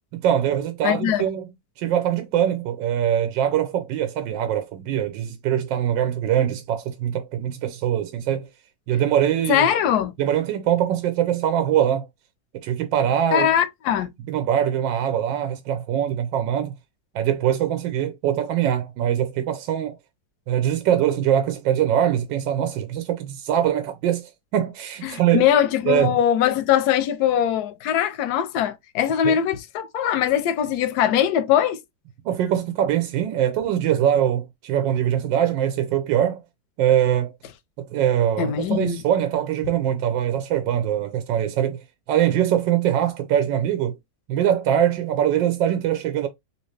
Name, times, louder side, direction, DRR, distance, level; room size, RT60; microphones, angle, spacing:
voice 1, 0.2-1.5 1.8-8.5 8.9-9.7 10.2-12.1 12.5-13.5 14.3-16.7 17.1-20.0 20.5-25.5 25.9-26.2 29.2-29.4 32.2-36.4 36.8-37.3 37.8-44.0 44.3-46.3, right 10 dB, 85° right, 1.3 m, -22 dB
voice 2, 0.8-1.3 9.5-10.1 13.3-14.1 25.0-31.8 38.4-39.0, left 10 dB, 70° left, 1.0 m, -21 dB
3.4 x 2.7 x 3.1 m
omnidirectional pair, 2.0 m